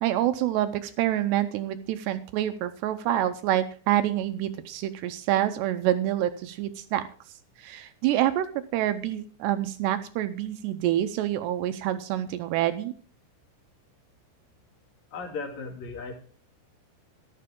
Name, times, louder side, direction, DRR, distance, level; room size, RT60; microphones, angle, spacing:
voice 1, 0.0-7.0 7.6-12.9, right 12 dB, 80° right, 9 dB, 2.5 m, -27 dB
voice 2, 15.1-16.1, left 4 dB, 45° left, 2 dB, 3.1 m, -36 dB
13.5 x 12.0 x 3.7 m, 0.43 s
omnidirectional pair, 5.6 m